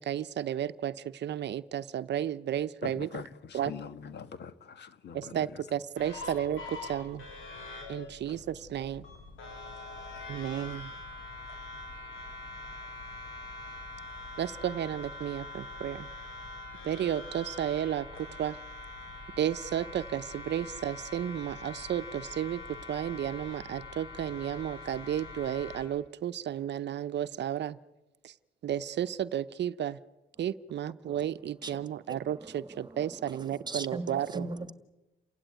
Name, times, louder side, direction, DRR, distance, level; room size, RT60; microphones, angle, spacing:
voice 1, 0.1-0.9 1.2-3.1 3.5-3.7 5.1-7.2 7.9-9.0 10.3-10.9 14.4-16.1 16.8-18.1 18.4-18.5 19.4-22.6 22.9-27.8 28.6-30.0 30.4-34.4, right 10 dB, 60° right, 0.7 m, -33 dB
voice 2, 2.8-5.6, left 6 dB, 60° left, 1.6 m, -43 dB
sound 1, 6.0-25.8, left 3 dB, 85° left, 7.8 m, -44 dB
voice 3, 31.6-34.7, right 3 dB, 20° right, 1.8 m, -40 dB
29.5 x 16.5 x 9.4 m
cardioid pair, 90°, 20 cm